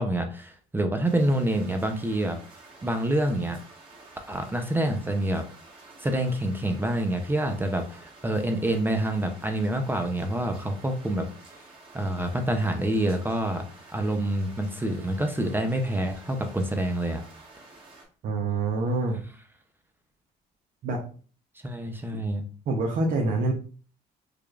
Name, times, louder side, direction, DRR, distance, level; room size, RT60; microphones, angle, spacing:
voice 1, 0.0-2.4 2.8-3.6 4.3-5.4 6.0-11.3 11.9-13.6 13.9-17.2 21.6-22.4, right 1 dB, 10° right, 5 dB, 0.5 m, -27 dB
sound 1, 1.0-18.1, right 3 dB, 30° right, 1.4 m, -50 dB
voice 2, 18.2-19.2 20.8-21.0 22.7-23.5, right 2 dB, 55° right, 0 dB, 0.7 m, -26 dB
4.9 x 2.3 x 2.3 m, 0.40 s
cardioid pair, 110°, 17 cm